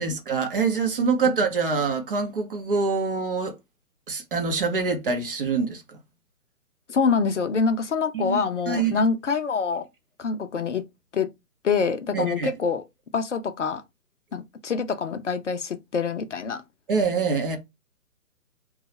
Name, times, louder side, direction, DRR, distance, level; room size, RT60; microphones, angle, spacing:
voice 1, 0.0-3.6 4.1-6.0 8.1-8.4 8.7-9.0 12.1-12.5 16.9-17.6, right 4 dB, 35° right, 0.7 m, -25 dB
voice 2, 6.9-9.9 10.2-10.8 11.1-11.3 11.6-12.8 13.1-13.8 14.3-16.6, left 5 dB, 50° left, 0.5 m, -25 dB
2.7 x 2.3 x 4.1 m
figure-of-eight pair, 145°, 46 cm